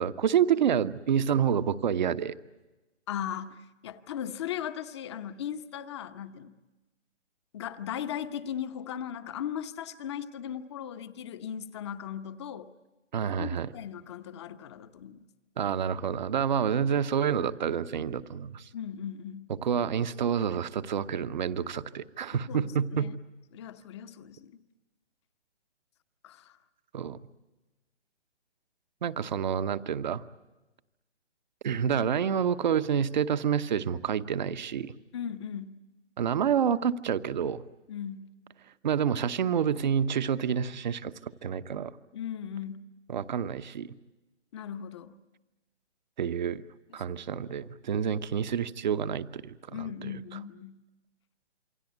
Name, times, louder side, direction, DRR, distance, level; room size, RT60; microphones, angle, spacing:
voice 1, 0.0-2.3 13.1-13.7 15.6-18.7 19.6-23.1 26.9-27.2 29.0-30.2 31.6-34.9 36.2-37.6 38.8-41.9 43.1-43.9 46.2-46.6 46.9-50.1, right 8 dB, 40° right, 13 dB, 0.9 m, -28 dB
voice 2, 3.1-6.5 7.5-12.7 13.3-15.2 18.7-19.5 22.3-23.2 23.5-24.5 26.2-26.5 35.1-35.8 37.9-38.3 42.1-42.9 44.5-45.2 49.7-50.8, left 9 dB, 25° left, 11 dB, 0.9 m, -38 dB
28.0 x 23.5 x 8.1 m, 1.1 s
figure-of-eight pair, 145°, 35 cm